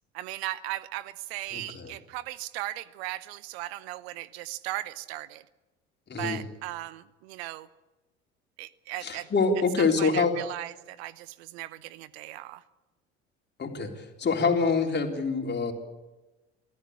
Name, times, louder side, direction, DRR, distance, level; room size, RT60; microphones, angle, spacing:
voice 1, 0.1-5.4 6.1-7.7 8.6-9.3 9.8-12.6, right 16 dB, 65° right, 19 dB, 0.8 m, -37 dB
voice 2, 1.5-1.9 6.1-6.4 9.0-10.3 13.6-15.7, left 4 dB, 30° left, 3 dB, 3.8 m, -26 dB
24.0 x 15.0 x 8.4 m, 1.1 s
hypercardioid pair, 65°, 34 cm